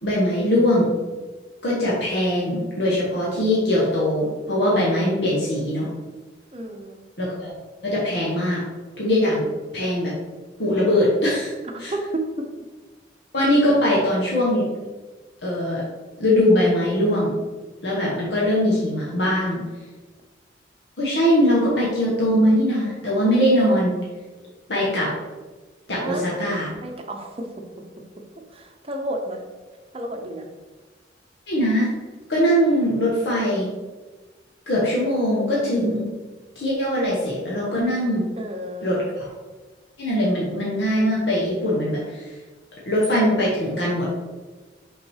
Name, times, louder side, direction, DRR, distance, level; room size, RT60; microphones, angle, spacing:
voice 1, 0.0-0.9 1.6-5.9 7.2-7.5 7.8-8.6 9.0-9.4 9.7-10.1 10.6-11.5 11.8-11.9 13.3-14.6 15.4-15.8 16.2-17.3 17.8-19.6 21.0-23.9 24.7-25.1 25.9-26.7 31.5-31.9 32.3-33.7 34.7-36.1 36.5-38.2 38.8-39.3 40.0-42.3 42.9-44.0, equal, 60° left, -5 dB, 1.3 m, -21 dB
voice 2, 6.5-7.0 11.9-12.0 12.4-12.5 26.0-26.2 26.8-27.5 28.5-29.4 29.9-30.5 38.4-39.0, right 1 dB, 30° right, 3 dB, 0.8 m, -32 dB
5.8 x 3.8 x 4.7 m, 1.3 s
head